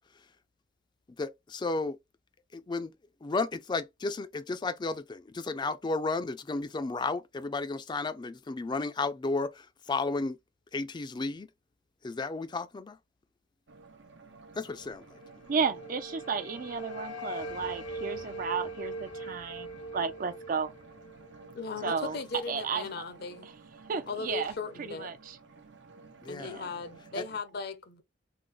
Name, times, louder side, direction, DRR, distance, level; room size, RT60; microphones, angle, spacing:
voice 1, 1.2-2.0 2.5-2.9 3.2-10.4 10.7-11.5 12.0-13.0 14.6-15.0 26.3-26.6 27.2-27.3, left 3 dB, 25° left, 0.4 m, -33 dB
sound 1, 13.7-27.4, right 3 dB, 80° right, 0.8 m, -53 dB
sound 2, 15.2-22.2, right 1 dB, 90° left, 0.8 m, -41 dB
voice 2, 15.5-20.7 21.8-22.2 22.5-22.8 23.9-24.5 24.8-25.4 26.4-26.7, right 5 dB, 50° right, 0.4 m, -33 dB
voice 3, 21.5-23.5 24.1-25.1 26.3-28.0, left 4 dB, 60° left, 0.6 m, -37 dB
3.7 x 2.0 x 3.1 m
head